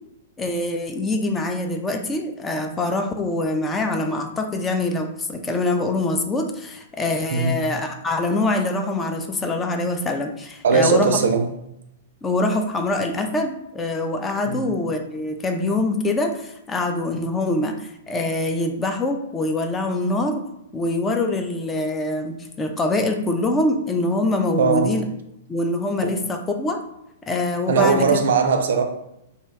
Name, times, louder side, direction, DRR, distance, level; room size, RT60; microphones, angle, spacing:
voice 1, 0.4-11.2 12.2-20.4 20.7-25.0 25.5-26.8 27.3-28.2, left 2 dB, 15° left, 0.4 m, -24 dB
voice 2, 10.6-11.5 14.5-14.7 24.6-24.9 26.0-26.1 27.7-28.8, right 5 dB, 65° right, 0.4 m, -19 dB
2.7 x 2.2 x 3.3 m
figure-of-eight pair, 110°, 0 cm